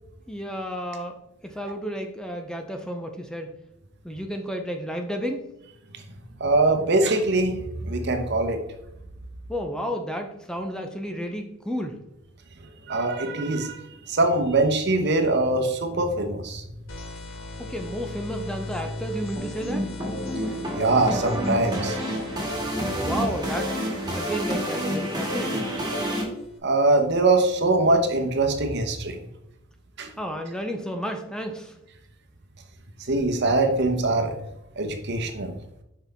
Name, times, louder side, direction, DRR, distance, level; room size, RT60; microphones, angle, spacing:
voice 1, 0.3-1.1 1.4-3.5 4.0-5.4 9.5-12.0 17.6-19.9 23.0-23.8 24.1-25.7 30.2-31.7, equal, 5° left, 4 dB, 0.5 m, -32 dB
voice 2, 6.4-8.6 12.9-13.8 14.1-16.6 20.7-22.0 26.6-29.2 30.0-30.1 33.1-34.3 34.8-35.5, right 2 dB, 55° right, 6 dB, 0.9 m, -22 dB
sound 1, 16.9-26.6, left 2 dB, 80° left, 1.1 m, -39 dB
sound 2, 19.4-26.2, equal, 20° right, 2.1 m, -29 dB
6.0 x 5.7 x 3.5 m, 0.84 s
head